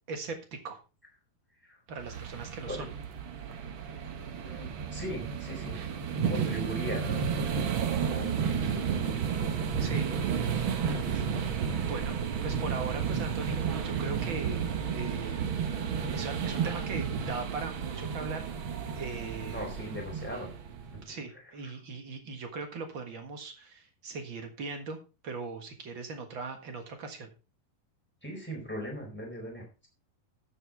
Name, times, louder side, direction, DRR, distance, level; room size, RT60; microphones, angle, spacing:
voice 1, 0.1-0.8 1.9-2.9 9.8-10.1 11.8-12.2 12.4-13.6 13.8-15.4 16.1-18.5 18.9-20.1 21.0-25.0 25.2-27.3, right 4 dB, 50° right, 5 dB, 1.7 m, -39 dB
sound 1, 2.0-21.0, right 7 dB, 80° right, 1.1 m, -32 dB
voice 2, 4.4-5.8 6.3-7.3 8.1-9.2 9.5-10.0 10.4-10.5 10.9-11.3 11.7-11.9 19.5-20.5 28.2-29.9, equal, 5° left, 1 dB, 3.8 m, -39 dB
13.0 x 8.0 x 3.5 m, 0.31 s
omnidirectional pair, 4.1 m